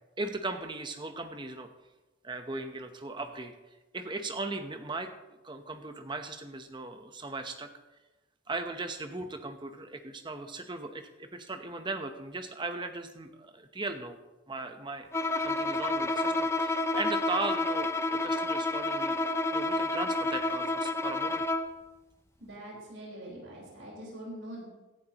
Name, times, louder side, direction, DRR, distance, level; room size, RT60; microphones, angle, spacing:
voice 1, 0.2-1.7 2.2-3.5 3.9-5.1 5.4-7.7 8.5-14.2 14.5-15.1 15.4-19.2 19.5-21.4, right 2 dB, 25° right, 7 dB, 0.9 m, -37 dB
Bowed string instrument, 15.1-21.8, left 2 dB, 15° left, 0.5 m, -29 dB
voice 2, 22.4-24.7, right 1 dB, 70° right, -4 dB, 4.9 m, -43 dB
16.5 x 11.5 x 3.0 m, 1.1 s
head